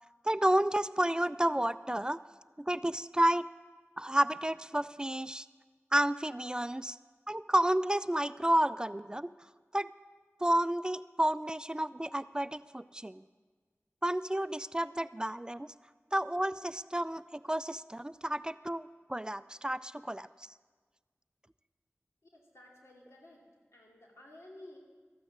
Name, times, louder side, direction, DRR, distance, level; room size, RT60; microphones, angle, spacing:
voice 1, 0.2-2.2 2.6-3.5 4.0-5.5 5.9-7.0 7.3-9.3 9.7-9.9 10.4-13.2 14.0-15.7 16.1-20.3, right 1 dB, 15° right, 15 dB, 0.3 m, -31 dB
voice 2, 22.3-23.4 23.7-24.8, left 1 dB, 90° left, -2 dB, 2.6 m, -53 dB
13.5 x 9.1 x 6.6 m, 1.4 s
wide cardioid pair, 45°, 5 cm